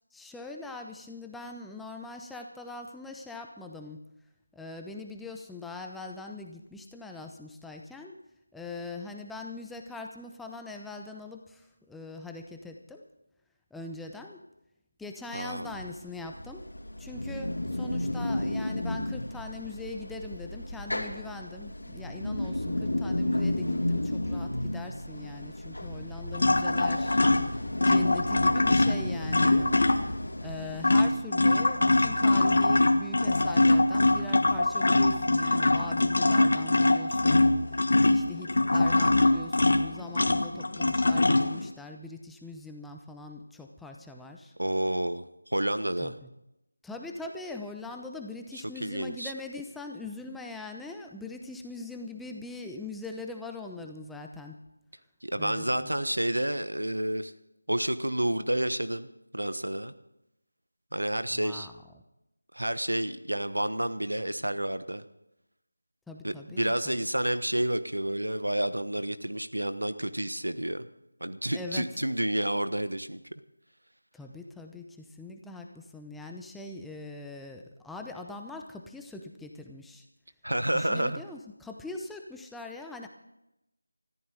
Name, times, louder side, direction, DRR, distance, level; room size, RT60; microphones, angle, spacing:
voice 1, 0.1-4.0 4.5-8.2 8.5-13.1 13.7-14.4 15.0-16.7 17.0-29.7 30.0-44.5 46.0-46.3 46.8-54.6 55.4-56.1 61.3-61.7 66.1-67.0 71.5-71.9 74.1-80.1 80.7-83.1, left 3 dB, ahead, 3 dB, 0.7 m, -42 dB
voice 2, 15.3-15.7 44.6-46.1 48.8-49.3 55.2-57.3 57.7-59.1 59.3-59.9 60.9-61.7 62.5-65.0 66.2-70.8 71.2-73.2 80.4-81.2, right 1 dB, 85° right, 12 dB, 1.2 m, -30 dB
sound 1, 15.6-31.0, left 1 dB, 75° left, 2.7 m, -33 dB
sound 2, 26.3-30.2 30.6-41.7, left 2 dB, 55° left, 1.5 m, -23 dB
20.5 x 14.0 x 4.0 m, 0.88 s
figure-of-eight pair, 165°, 0 cm